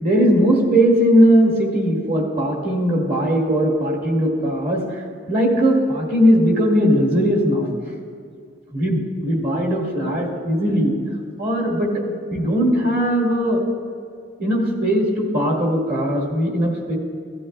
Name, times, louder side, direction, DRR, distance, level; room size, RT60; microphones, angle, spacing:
voice 1, 0.0-5.0 5.3-7.7 8.7-10.9 11.4-12.1 12.3-13.6 14.4-17.0, equal, 50° right, -1 dB, 2.0 m, -19 dB
15.5 x 12.0 x 2.2 m, 2.2 s
head